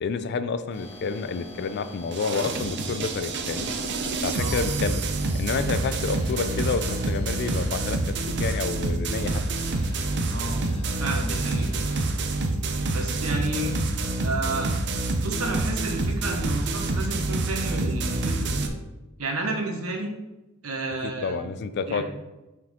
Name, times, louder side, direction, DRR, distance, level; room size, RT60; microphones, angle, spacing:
voice 1, 0.0-3.7 4.2-5.1 5.3-8.0 8.4-9.4 21.0-22.0, left 5 dB, 50° left, 11 dB, 0.4 m, -29 dB
sound 1, 0.7-4.1 5.2-7.9 9.2-12.1, left 2 dB, 30° left, 1.0 m, -45 dB
sound 2, 2.1-18.7, right 2 dB, 55° right, 0.6 m, -27 dB
voice 2, 4.3-4.6 10.3-10.7 11.0-11.7 12.9-14.7 15.2-18.7 19.2-20.1 20.6-21.4 21.9-22.0, right 2 dB, 75° right, 1 dB, 1.2 m, -31 dB
6.0 x 4.6 x 3.6 m, 1.0 s
head